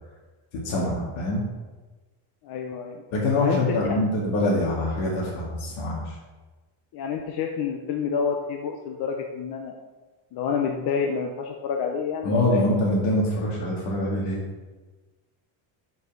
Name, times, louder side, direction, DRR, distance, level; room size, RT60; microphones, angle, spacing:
voice 1, 0.6-1.4 3.1-6.1 12.2-14.4, left 1 dB, 75° left, -4 dB, 2.3 m, -24 dB
voice 2, 2.4-3.0 3.4-4.0 6.9-9.7 10.3-12.7, left 6 dB, 50° left, 2 dB, 0.8 m, -28 dB
6.7 x 5.3 x 6.1 m, 1.3 s
cardioid pair, 165°, 50 cm